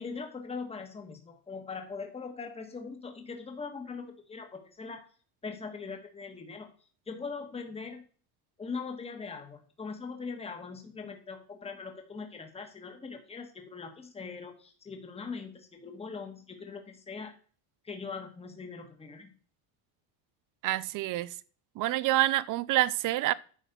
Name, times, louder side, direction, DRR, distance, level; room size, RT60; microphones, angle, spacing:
voice 1, 0.0-5.0 5.4-6.7 7.1-8.0 8.6-17.3 17.8-19.3, left 4 dB, 15° left, 1.4 m, -41 dB
voice 2, 20.6-21.3 21.8-23.3, right 16 dB, 45° right, 0.5 m, -27 dB
10.0 x 4.1 x 6.9 m
cardioid pair, 155°, 46 cm